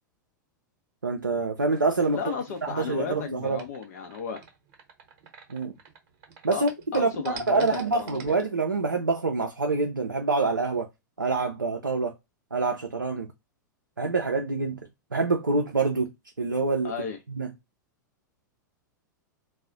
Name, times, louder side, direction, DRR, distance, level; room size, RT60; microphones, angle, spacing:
voice 1, 1.0-2.2 2.6-3.6 5.5-5.7 6.4-10.9 11.2-12.1 12.5-13.3 14.0-14.8 15.1-16.1 16.4-16.9 17.3-17.5, right 3 dB, 90° right, 0.4 m, -26 dB
sound 1, 1.6-6.0 6.2-8.4, right 2 dB, 45° right, 0.8 m, -44 dB
voice 2, 2.1-4.4 6.5-6.6 6.9-8.4 16.8-17.2, left 6 dB, 55° left, 0.5 m, -34 dB
2.3 x 2.0 x 3.6 m
figure-of-eight pair, 95°, 10 cm